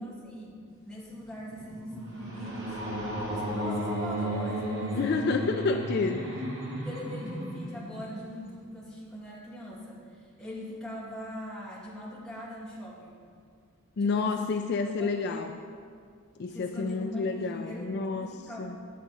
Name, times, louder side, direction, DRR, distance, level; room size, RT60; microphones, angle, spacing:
voice 1, 0.0-2.8 3.2-5.3 6.8-13.2 14.0-15.6 16.5-17.9 18.2-18.8, equal, 5° left, -7 dB, 2.1 m, -41 dB
sound 1, 1.1-8.5, equal, 60° right, 2.3 m, -34 dB
voice 2, 4.9-6.5 14.0-15.5 16.4-18.3 18.6-18.8, left 4 dB, 50° left, 6 dB, 0.4 m, -29 dB
9.8 x 8.4 x 4.1 m, 2.3 s
head